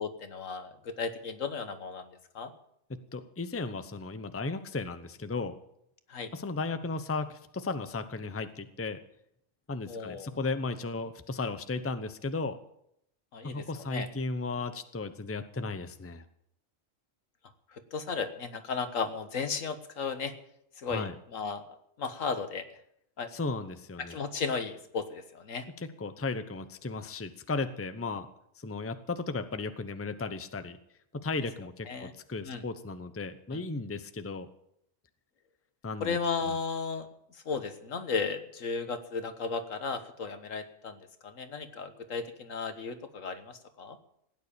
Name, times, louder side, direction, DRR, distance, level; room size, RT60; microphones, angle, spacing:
voice 1, 0.0-2.1 2.3-2.5 6.1-6.3 9.9-10.3 13.3-13.6 13.9-14.1 17.7-20.3 20.8-21.6 22.0-22.6 23.2-23.3 24.1-25.6 31.9-32.1 32.4-32.6 33.5-33.6 36.0-37.1 37.4-44.0, left 5 dB, 80° left, 9 dB, 1.7 m, -35 dB
voice 2, 2.9-5.5 6.3-9.0 9.7-12.6 13.4-16.2 20.8-21.2 23.3-24.2 25.8-28.3 28.6-30.8 31.1-34.5 35.8-36.2 36.5-36.6, left 3 dB, 15° left, 10 dB, 0.7 m, -35 dB
16.5 x 9.6 x 8.6 m, 0.75 s
omnidirectional pair, 1.4 m